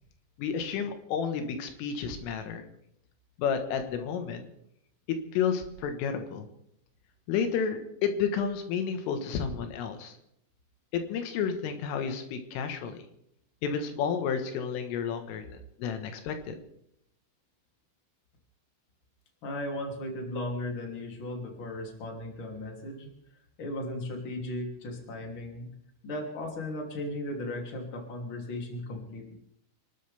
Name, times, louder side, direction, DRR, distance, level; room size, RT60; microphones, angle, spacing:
voice 1, 0.4-2.7 3.4-4.4 5.3-6.5 7.3-10.2 10.9-13.0 13.6-16.6, left 7 dB, 90° left, 7 dB, 4.0 m, -31 dB
voice 2, 19.4-23.1 23.6-25.7 26.0-29.3, left 1 dB, 30° left, 1 dB, 3.0 m, -36 dB
28.0 x 12.5 x 3.5 m, 0.74 s
omnidirectional pair, 5.6 m